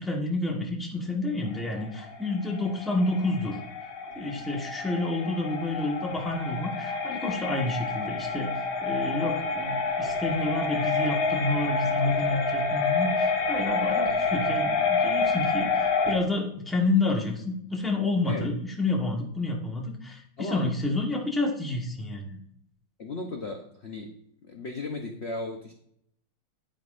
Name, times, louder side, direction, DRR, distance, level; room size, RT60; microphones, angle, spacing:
voice 1, 0.0-3.6 4.1-8.5 8.8-22.4, left 2 dB, ahead, -1 dB, 1.0 m, -29 dB
sound 1, 1.5-16.2, left 4 dB, 75° left, 2.0 m, -28 dB
voice 2, 20.4-20.7 23.0-24.1 24.4-25.7, left 2 dB, 55° left, 3 dB, 0.7 m, -36 dB
10.0 x 8.9 x 2.5 m, 0.70 s
omnidirectional pair, 2.3 m